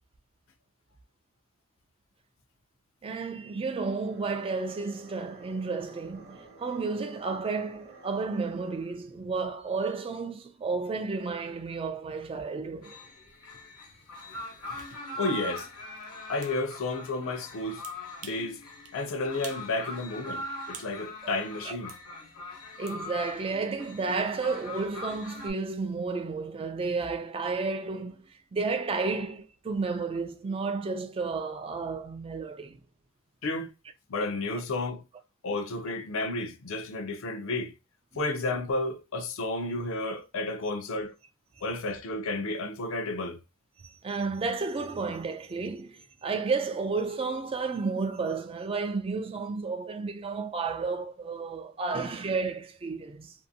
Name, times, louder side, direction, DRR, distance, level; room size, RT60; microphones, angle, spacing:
voice 1, 3.0-13.0 21.6-21.8 22.8-32.8 43.8-53.3, right 4 dB, 25° right, 0.3 m, -32 dB
sound 1, 3.9-9.2, right 1 dB, 45° right, 0.7 m, -51 dB
sound 2, 12.8-25.5, left 2 dB, 80° left, 1.0 m, -41 dB
sound 3, 14.8-14.9 15.6-15.7 16.4-16.6 17.8-18.5 18.9-19.0 19.4-19.7 20.0-21.0 21.9-22.0 22.9-23.0, right 8 dB, 80° right, 0.5 m, -46 dB
voice 2, 15.2-15.7 16.3-17.8 18.2-18.6 18.9-21.9 33.4-33.7 34.1-35.0 35.4-37.7 38.2-41.1 41.6-43.4, left 2 dB, 65° left, 0.5 m, -32 dB
2.6 x 2.5 x 2.6 m
head